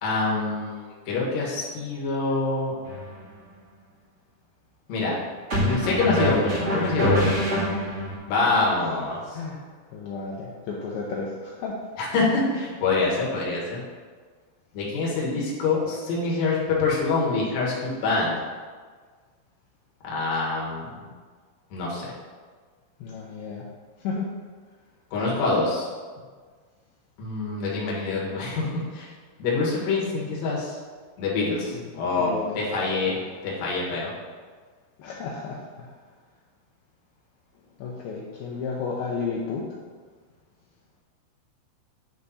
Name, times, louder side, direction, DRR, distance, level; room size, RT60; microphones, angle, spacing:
voice 1, 0.0-0.8 1.1-2.7 4.9-5.2 5.6-7.4 8.3-9.4 12.0-13.8 14.7-18.3 20.0-21.0 21.7-22.1 25.1-25.9 27.2-29.1 29.4-30.8 31.2-33.1 33.4-34.1, left 3 dB, 60° left, -4 dB, 2.1 m, -25 dB
sound 1, 2.8-3.1 5.5-8.2, right 1 dB, 40° right, 0.9 m, -25 dB
voice 2, 9.9-11.8 23.0-23.7 24.0-24.3 31.7-31.9 32.2-32.6 33.1-33.2 35.0-35.9 37.8-39.7, left 4 dB, 80° left, -4 dB, 2.4 m, -32 dB
9.1 x 3.3 x 4.1 m, 1.5 s
omnidirectional pair, 4.7 m